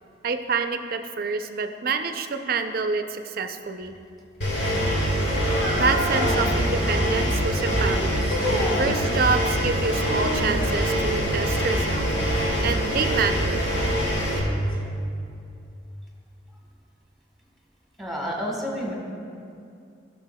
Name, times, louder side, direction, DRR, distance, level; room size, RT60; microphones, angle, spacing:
voice 1, 0.2-3.9 5.8-8.4 8.8-12.1 12.6-13.6, right 4 dB, 55° right, 7 dB, 0.5 m, -27 dB
Engine, 4.4-14.4, equal, 75° left, 1.7 m, -24 dB
sound 1, 5.5-6.5 8.2-8.9 9.9-10.6 12.7-12.8 13.6-13.7 14.7-14.8, equal, 50° left, 1.5 m, -29 dB
voice 2, 18.0-18.9, equal, ahead, -3 dB, 1.3 m, -29 dB
15.5 x 6.5 x 2.2 m, 2.5 s
head